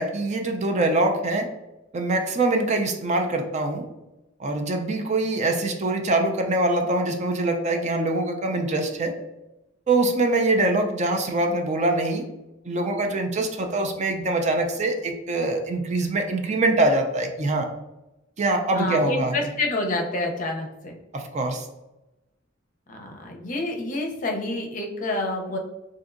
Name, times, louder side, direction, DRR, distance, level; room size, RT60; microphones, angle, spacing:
voice 1, 0.0-1.5 1.9-3.8 4.4-9.1 9.9-12.2 12.6-17.7 18.4-19.4 21.1-21.7, right 2 dB, 35° right, 4 dB, 0.4 m, -24 dB
voice 2, 18.7-21.0 22.9-25.6, left 2 dB, 40° left, 2 dB, 0.5 m, -28 dB
3.9 x 2.6 x 2.5 m, 0.97 s
head